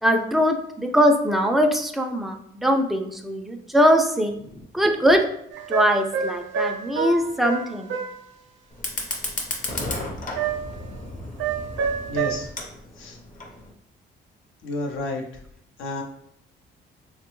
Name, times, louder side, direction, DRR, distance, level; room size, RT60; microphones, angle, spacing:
voice 1, 0.0-4.3 4.7-5.2 5.7-7.9, equal, ahead, 4 dB, 0.3 m, -21 dB
sound 1, 5.5-8.2 10.4-10.9 11.4-12.4, right 6 dB, 70° right, 0.6 m, -28 dB
Fire, 8.7-13.7, left 2 dB, 40° left, 0.7 m, -33 dB
voice 2, 12.1-12.5 13.0-13.2 14.6-15.2 15.8-16.0, left 2 dB, 80° left, 1 dB, 0.6 m, -30 dB
3.3 x 2.1 x 3.0 m, 0.71 s
cardioid pair, 90°, 20 cm